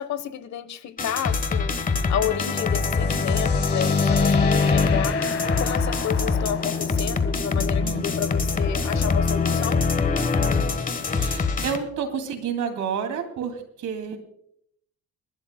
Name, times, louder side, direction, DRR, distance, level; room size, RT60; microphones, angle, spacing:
voice 1, 0.0-1.8 2.1-5.2 5.6-9.8, left 9 dB, 65° left, 14 dB, 1.1 m, -30 dB
sound 1, 1.0-11.8, left 4 dB, 30° left, 1.2 m, -23 dB
sound 2, 2.4-9.6, left 6 dB, 50° left, 1.5 m, -37 dB
voice 2, 11.1-14.2, right 7 dB, 75° right, 6 dB, 2.6 m, -30 dB
29.5 x 12.0 x 2.2 m, 0.70 s
cardioid pair, 140°, 30 cm